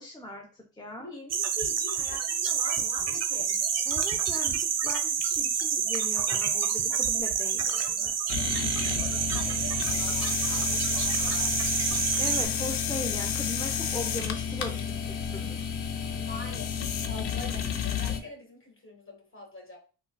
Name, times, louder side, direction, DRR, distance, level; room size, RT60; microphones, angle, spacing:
voice 1, 0.0-1.1 3.9-8.2 12.2-15.7, left 1 dB, 10° left, 1 dB, 0.5 m, -39 dB
voice 2, 1.0-3.6 8.5-11.6 16.1-19.8, left 2 dB, 30° left, 0 dB, 1.6 m, -44 dB
sound 1, 1.3-12.4, right 7 dB, 40° right, 0.6 m, -28 dB
sound 2, 8.3-18.2, left 7 dB, 75° left, 0.5 m, -31 dB
3.8 x 2.1 x 2.2 m, 0.35 s
supercardioid pair, 65°, 40 cm